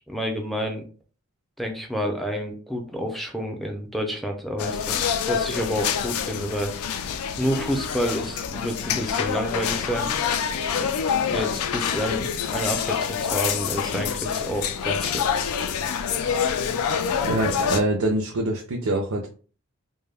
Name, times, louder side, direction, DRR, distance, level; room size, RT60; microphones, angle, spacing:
voice 1, 0.1-0.8 1.6-6.7 7.4-10.1 10.8-10.9 11.3-15.3, equal, ahead, 2 dB, 0.4 m, -29 dB
sound 1, 4.6-17.8, left 7 dB, 85° left, 0.3 m, -26 dB
voice 2, 17.2-19.3, right 1 dB, 90° right, 0 dB, 0.5 m, -24 dB
2.1 x 2.1 x 3.3 m, 0.38 s
head